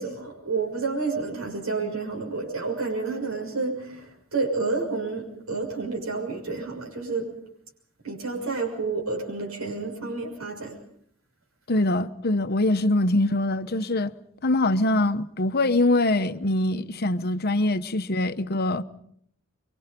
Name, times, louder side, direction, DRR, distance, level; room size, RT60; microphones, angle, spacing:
voice 1, 0.0-7.4 8.0-10.8, right 4 dB, 85° right, 6.4 m, -30 dB
voice 2, 11.7-14.1 14.4-18.8, left 2 dB, 50° left, 1.0 m, -23 dB
27.0 x 24.5 x 5.3 m
head